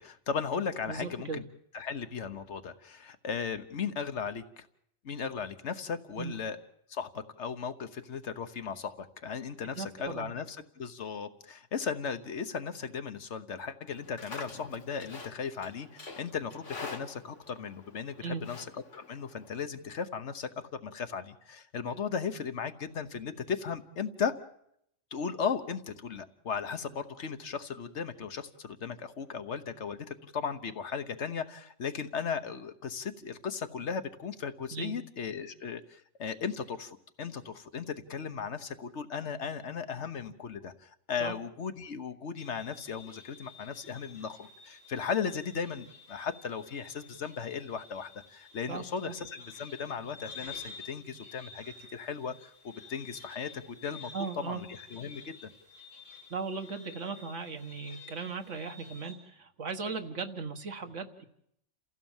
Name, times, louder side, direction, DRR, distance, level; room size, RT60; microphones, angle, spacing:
voice 1, 0.0-1.4 1.7-4.7 5.0-6.6 6.9-18.7 19.1-24.3 25.1-54.1 54.4-55.5, left 6 dB, 70° left, 9 dB, 1.4 m, -36 dB
voice 2, 0.9-1.4 6.2-6.3 9.7-10.3 18.2-18.4 34.7-34.9 41.2-41.3 48.7-49.1 54.1-54.6 56.3-61.2, right 4 dB, 85° right, 6 dB, 1.8 m, -37 dB
Livestock farm animals working animals, 13.9-19.6, left 3 dB, 90° left, 2.4 m, -47 dB
sound 1, 42.4-59.1, left 5 dB, 30° right, 5.2 m, -51 dB
28.5 x 15.5 x 7.3 m, 0.75 s
omnidirectional pair, 1.2 m